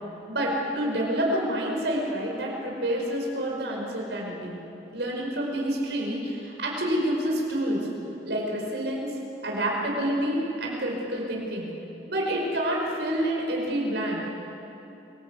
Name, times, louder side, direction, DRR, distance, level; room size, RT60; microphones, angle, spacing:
voice 1, 0.3-4.6 4.9-7.9 8.2-9.1 9.4-11.7 12.1-14.2, right 1 dB, 85° right, -2 dB, 5.2 m, -28 dB
28.0 x 19.0 x 8.4 m, 2.9 s
head